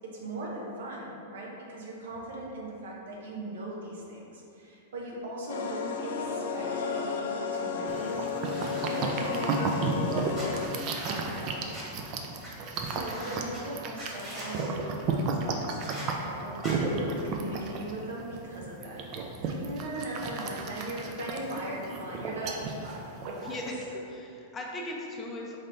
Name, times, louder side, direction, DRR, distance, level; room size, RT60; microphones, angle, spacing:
voice 1, 0.0-8.3 8.8-11.8 12.7-16.8 17.0-19.0 19.4-23.6, right 1 dB, 75° right, -3 dB, 0.8 m, -39 dB
sound 1, 5.5-10.7, left 5 dB, 75° left, 0.4 m, -33 dB
sound 2, 7.9-23.7, right 3 dB, 45° right, 0.4 m, -33 dB
sound 3, 8.4-9.8 10.3-11.8 12.4-12.5 12.7-13.6 14.0-14.7 15.8-16.1 16.6-16.7, equal, 10° right, 1.4 m, -43 dB
voice 2, 23.4-25.6, left 1 dB, 20° left, -1 dB, 0.6 m, -38 dB
4.2 x 3.2 x 2.6 m, 2.8 s
hypercardioid pair, 120°, 0 cm